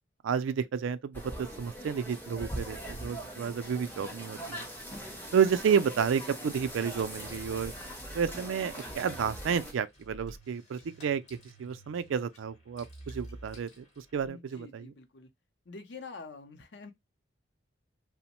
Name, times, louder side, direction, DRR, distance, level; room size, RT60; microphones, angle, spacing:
voice 1, 0.2-4.7 5.3-7.7 8.1-13.8 14.1-14.9, right 7 dB, 80° right, 0.3 m, -31 dB
sound 1, 1.1-9.7, equal, 10° left, 0.5 m, -41 dB
sound 2, 6.3-14.3, right 1 dB, 35° left, 0.9 m, -51 dB
voice 2, 14.2-15.3 15.7-16.9, left 4 dB, 60° left, 0.5 m, -46 dB
2.9 x 2.1 x 2.9 m
head